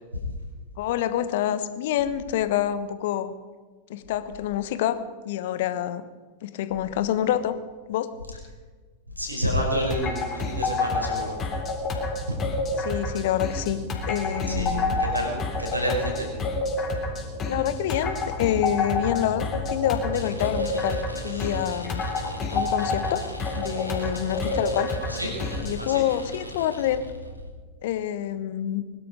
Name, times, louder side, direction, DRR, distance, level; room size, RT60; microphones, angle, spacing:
voice 1, 0.8-3.3 3.9-5.0 5.2-6.0 6.4-7.5 7.9-8.1 12.8-15.0 17.5-22.0 22.5-23.2 23.6-24.9 25.6-27.1 27.8-28.8, left 11 dB, 55° left, 12 dB, 1.2 m, -27 dB
voice 2, 9.2-11.4 14.5-16.3 25.0-25.3 25.8-26.0, equal, 85° right, 0 dB, 4.9 m, -29 dB
sound 1, 9.9-25.8, left 3 dB, 25° left, 3.6 m, -29 dB
sound 2, 12.1-27.4, right 1 dB, 60° right, 4.4 m, -41 dB
sound 3, 20.1-27.4, left 1 dB, 90° left, 1.7 m, -42 dB
21.5 x 12.0 x 5.2 m, 1.4 s
figure-of-eight pair, 90°, 0 cm